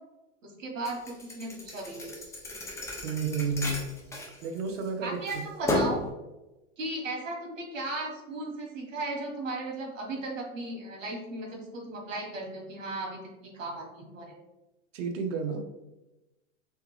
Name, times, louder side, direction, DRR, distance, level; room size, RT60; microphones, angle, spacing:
voice 1, 0.4-2.1 5.0-6.0 6.8-13.2 13.5-14.3, right 2 dB, 90° right, 0 dB, 1.5 m, -36 dB
Thump thud, 0.8-4.9 5.3-6.1, left 1 dB, 10° left, 0.4 m, -33 dB
voice 2, 3.0-3.9 4.4-5.2 14.9-15.6, right 4 dB, 70° right, 4 dB, 0.9 m, -31 dB
3.6 x 3.5 x 3.1 m, 1.0 s
hypercardioid pair, 130°, 38 cm